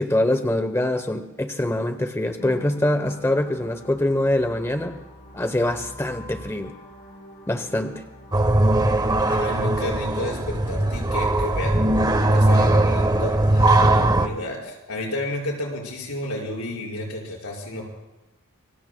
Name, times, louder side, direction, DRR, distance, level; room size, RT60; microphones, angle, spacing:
voice 1, 0.0-5.0 5.3-6.7 7.5-8.0, left 1 dB, 10° left, 8 dB, 0.8 m, -24 dB
sound 1, 2.4-14.4, equal, 50° left, 4.3 m, -45 dB
sound 2, 8.3-14.3, right 1 dB, 20° right, 0.9 m, -19 dB
voice 2, 9.3-11.8 12.2-17.8, left 1 dB, 85° left, -1 dB, 5.5 m, -32 dB
28.0 x 23.0 x 2.2 m, 1.1 s
head